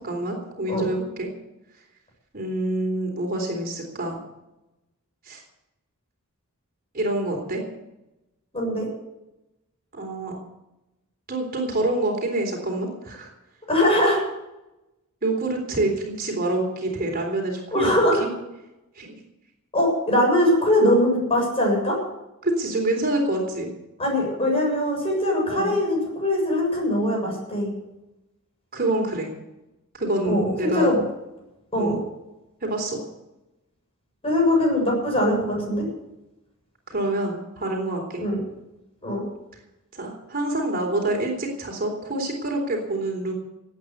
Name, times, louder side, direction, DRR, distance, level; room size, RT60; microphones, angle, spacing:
voice 1, 0.0-1.3 2.3-4.2 5.2-5.4 6.9-7.6 9.9-10.3 11.3-13.3 15.2-18.3 19.0-19.2 22.4-23.7 25.5-25.8 28.7-29.3 29.9-30.9 31.8-32.0 32.6-33.0 36.9-38.2 39.9-43.3, right 2 dB, 40° right, 1 dB, 3.7 m, -26 dB
voice 2, 8.5-8.9 13.7-14.2 17.7-18.2 19.7-22.0 24.0-27.7 30.2-30.5 30.7-31.0 31.7-32.0 34.2-35.8 38.2-38.4 39.0-39.2, left 1 dB, 25° left, -1 dB, 7.2 m, -21 dB
17.0 x 9.2 x 8.1 m, 0.94 s
head